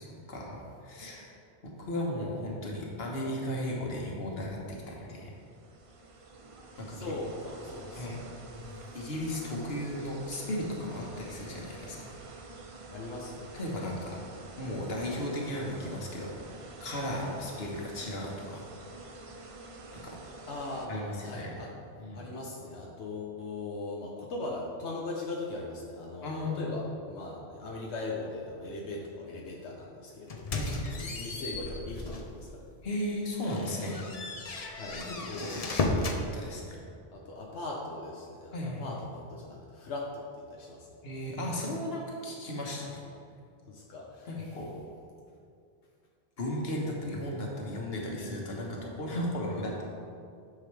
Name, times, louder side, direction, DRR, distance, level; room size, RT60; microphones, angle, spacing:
voice 1, 0.3-1.3 1.6-5.3 6.8-7.0 8.0-8.2 8.9-12.1 13.5-14.2 14.6-16.3 16.8-18.6 19.9-20.1 20.9-21.0 21.4-21.5 22.0-22.2 26.2-26.7 30.5-30.9 32.8-34.0 35.2-36.8 38.5-38.8 41.0-43.0 44.3-44.7 46.4-49.9, left 1 dB, 65° left, -2 dB, 1.5 m, -35 dB
sound 1, 5.1-20.9, right 2 dB, 40° right, 0.5 m, -48 dB
voice 2, 6.8-9.0 12.9-13.5 20.5-21.7 22.1-30.5 31.0-32.8 34.7-35.6 37.1-41.6 43.7-44.7, left 2 dB, 90° left, -2 dB, 1.2 m, -40 dB
sound 2, 30.3-32.4 32.8-33.0 33.4-36.2, left 2 dB, 40° left, 0.6 m, -34 dB
9.5 x 6.3 x 3.3 m, 2.4 s
omnidirectional pair, 1.1 m